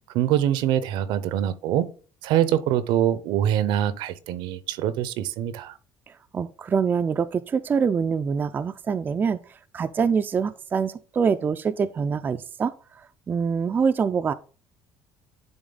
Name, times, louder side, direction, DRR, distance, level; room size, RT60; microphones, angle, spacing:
voice 1, 0.1-1.9 2.2-5.8, right 11 dB, 75° right, 0.7 m, -24 dB
voice 2, 6.1-14.3, right 6 dB, 25° right, 0.4 m, -25 dB
10.5 x 3.6 x 3.9 m
cardioid pair, 140°, 8 cm